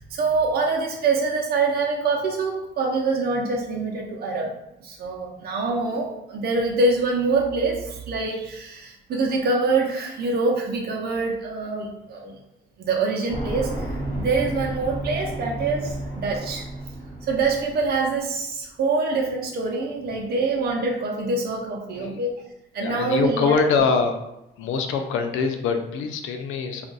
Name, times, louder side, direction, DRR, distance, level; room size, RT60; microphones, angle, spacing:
voice 1, 0.1-4.5 4.8-12.3 12.8-13.7 14.2-16.6 17.3-22.4 22.7-23.6, right 3 dB, 50° right, -1 dB, 0.7 m, -25 dB
sound 1, 13.3-18.2, right 1 dB, 35° left, 1.2 m, -32 dB
voice 2, 22.8-24.2 24.6-26.9, left 5 dB, 85° left, 6 dB, 0.5 m, -24 dB
2.5 x 2.3 x 3.8 m, 0.85 s
cardioid pair, 90°, 20 cm